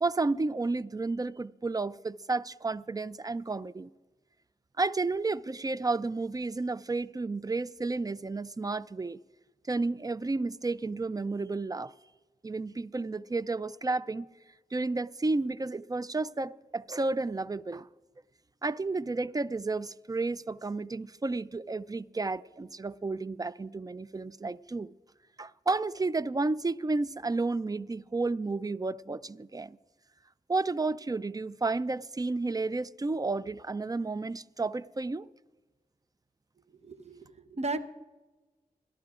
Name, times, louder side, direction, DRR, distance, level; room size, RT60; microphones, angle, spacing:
voice 1, 0.0-3.9 4.8-9.2 9.7-11.9 12.4-14.3 14.7-17.9 18.6-24.9 25.4-29.8 30.5-35.3, right 3 dB, 25° right, 0.3 m, -32 dB
voice 2, 36.8-37.8, right 2 dB, 45° right, 0.8 m, -35 dB
27.5 x 11.5 x 2.4 m
cardioid pair, 50°, 16 cm